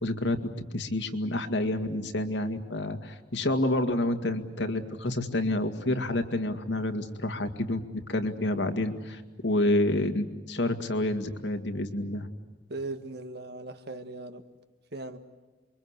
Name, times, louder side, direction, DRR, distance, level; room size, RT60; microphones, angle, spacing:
voice 1, 0.0-0.4 0.7-7.8 8.1-12.3, left 1 dB, 80° left, 6 dB, 2.2 m, -28 dB
voice 2, 12.7-14.4 14.9-15.2, right 2 dB, 65° right, 8 dB, 1.8 m, -38 dB
28.0 x 23.5 x 8.3 m, 1.2 s
head